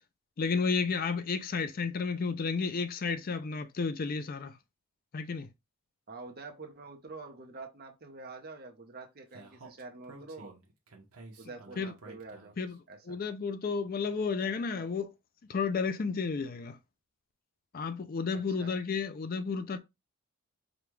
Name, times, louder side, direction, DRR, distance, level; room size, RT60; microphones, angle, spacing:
voice 1, 0.4-4.5 5.1-5.5 11.8-11.9 12.6-12.8 13.1-15.1 15.5-16.8 17.7-19.8, left 5 dB, 40° left, 0.4 m, -32 dB
voice 2, 6.1-10.6 11.4-12.5 12.9-13.2 18.3-18.8, right 3 dB, 45° right, 0.8 m, -46 dB
Speech, 9.3-12.7, right 2 dB, 80° right, 1.0 m, -51 dB
5.0 x 2.3 x 3.1 m
head